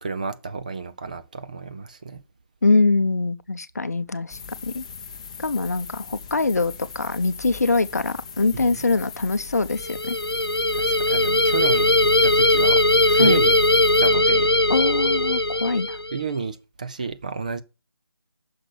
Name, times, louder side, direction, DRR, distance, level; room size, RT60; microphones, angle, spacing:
voice 1, 0.0-2.2 8.5-8.8 10.7-13.6 14.0-14.5 16.1-17.6, right 4 dB, 20° right, 0.6 m, -31 dB
voice 2, 2.6-4.8 5.4-10.2 13.2-13.4 14.7-15.9, left 3 dB, 40° left, 0.8 m, -23 dB
sound 1, 4.3-14.1, left 6 dB, 15° left, 0.8 m, -39 dB
sound 2, 9.8-16.2, left 1 dB, 80° left, 1.0 m, -19 dB
9.9 x 6.8 x 8.2 m
figure-of-eight pair, 160°, 13 cm